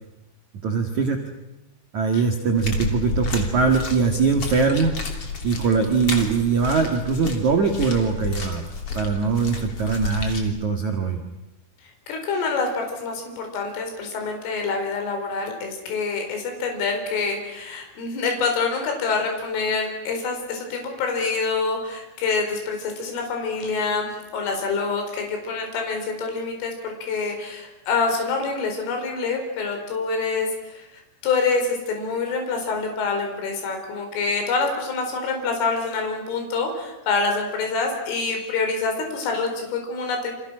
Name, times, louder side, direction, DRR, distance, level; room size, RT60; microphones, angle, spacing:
voice 1, 0.6-1.2 1.9-5.0 5.4-8.6 8.9-11.2, right 5 dB, 55° right, 4 dB, 2.2 m, -22 dB
sound 1, 2.6-10.4, left 3 dB, 35° left, 3.3 m, -31 dB
voice 2, 12.1-30.9 31.2-40.3, left 4 dB, 70° left, 3 dB, 7.0 m, -26 dB
30.0 x 27.0 x 6.3 m, 0.96 s
omnidirectional pair, 6.0 m